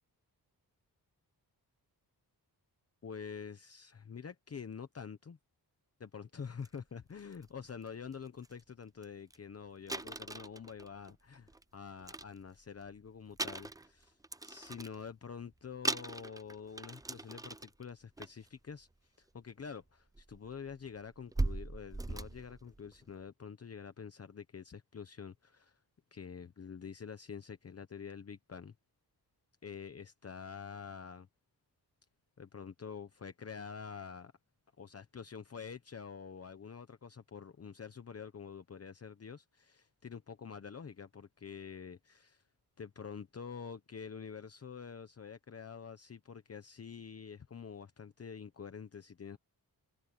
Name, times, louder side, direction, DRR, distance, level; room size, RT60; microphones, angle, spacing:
voice 1, 3.0-5.4 6.0-14.2 14.4-18.9 19.2-25.8 26.1-28.7 29.6-31.3 32.4-34.3 34.8-42.4 42.8-49.4, left 6 dB, 40° left, 0.9 m, -47 dB
sound 1, 6.6-6.7 7.2-7.4 8.1-8.2 8.4-8.6 9.0-9.1 9.3-9.4 9.9-11.6 12.0-12.9 13.3-15.0 15.5-15.6 15.8-17.8 18.2-18.5 19.6-19.7 20.1-23.1, right 2 dB, 10° right, 0.5 m, -39 dB
wide cardioid pair, 165°, 39 cm